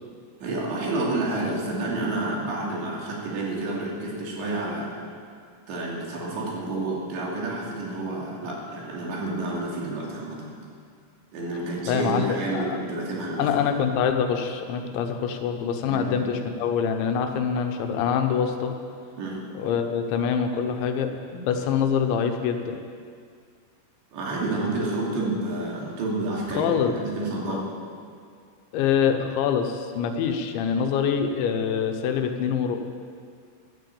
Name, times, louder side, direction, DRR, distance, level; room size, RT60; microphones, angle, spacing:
voice 1, 0.4-5.0 5.7-10.5 11.3-13.5 15.9-16.1 19.2-19.4 24.1-27.7, right 2 dB, 70° right, -3 dB, 5.0 m, -29 dB
voice 2, 11.9-12.8 13.4-18.7 19.5-22.8 26.6-26.9 27.5-27.6 28.7-32.8, left 7 dB, 80° left, 5 dB, 3.4 m, -25 dB
13.0 x 12.0 x 8.5 m, 2.2 s
omnidirectional pair, 5.3 m